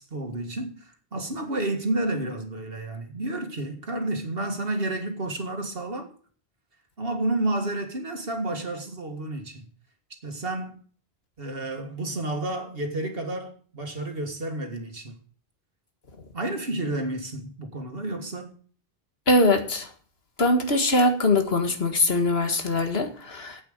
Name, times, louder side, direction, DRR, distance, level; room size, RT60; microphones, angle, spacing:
voice 1, 0.0-6.1 7.0-9.7 10.2-10.8 11.4-15.2 16.3-18.5, right 2 dB, 65° right, 2.1 m, -30 dB
voice 2, 19.3-19.9 20.4-23.6, left 2 dB, 75° left, 2.0 m, -22 dB
8.7 x 8.6 x 6.5 m
omnidirectional pair, 1.0 m